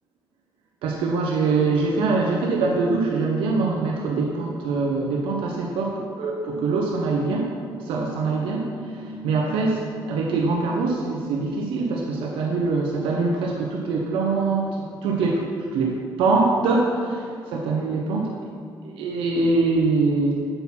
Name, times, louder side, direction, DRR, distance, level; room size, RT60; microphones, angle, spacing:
voice 1, 0.8-18.3 18.8-20.5, right 3 dB, 85° right, -1 dB, 0.9 m, -24 dB
7.9 x 4.1 x 5.9 m, 2.4 s
cardioid pair, 90°, 9 cm